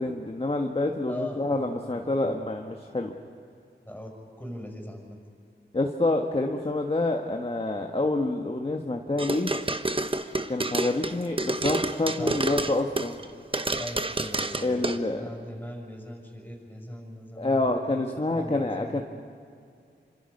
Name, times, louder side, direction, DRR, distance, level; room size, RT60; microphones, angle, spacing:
voice 1, 0.0-3.1 5.7-9.5 10.5-13.2 14.6-15.3 17.4-19.0, left 2 dB, 30° left, 3 dB, 1.4 m, -27 dB
voice 2, 1.1-2.5 3.8-4.1 4.4-5.2 12.0-12.4 12.6-12.9 13.8-18.0 18.3-19.0, equal, 10° left, 1 dB, 6.4 m, -40 dB
sound 1, 9.2-13.2 13.5-15.0, right 2 dB, 30° right, 1.0 m, -28 dB
27.5 x 26.0 x 5.4 m, 2.4 s
wide cardioid pair, 65°, 19 cm